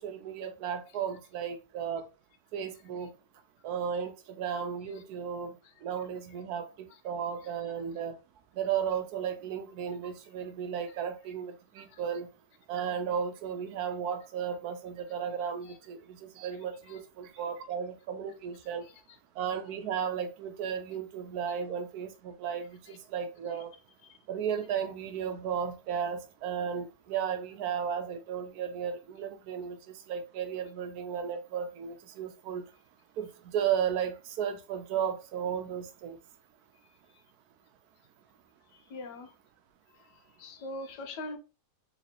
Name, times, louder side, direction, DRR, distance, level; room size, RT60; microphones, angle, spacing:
voice 1, 0.0-2.0 2.5-3.1 3.6-5.5 5.8-8.1 8.6-12.3 12.7-18.8 19.4-23.7 24.3-29.8 30.1-32.6 33.2-36.2, right 8 dB, 75° right, 1.1 m, -34 dB
voice 2, 38.9-39.3 40.0-41.4, left 2 dB, 85° left, 1.3 m, -42 dB
4.0 x 3.3 x 2.8 m
omnidirectional pair, 1.7 m